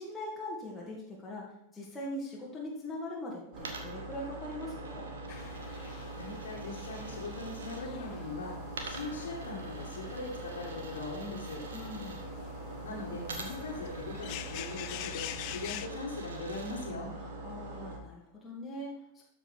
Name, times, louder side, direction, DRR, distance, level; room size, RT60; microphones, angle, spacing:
voice 1, 0.0-5.1 11.7-12.3 17.2-19.2, left 1 dB, 10° left, -5 dB, 2.3 m, -41 dB
sound 1, 3.5-18.0, right 2 dB, 45° right, 2.2 m, -43 dB
Coin (dropping), 3.5-7.8 8.7-12.2 13.2-16.9, right 3 dB, 65° right, 1.4 m, -48 dB
sound 2, 5.3-15.9, left 14 dB, 45° left, 0.5 m, -47 dB
voice 2, 6.1-8.6 8.8-11.6 12.8-17.1, left 3 dB, 65° left, -4 dB, 2.0 m, -40 dB
12.5 x 5.2 x 5.4 m, 0.81 s
figure-of-eight pair, 90°, 0 cm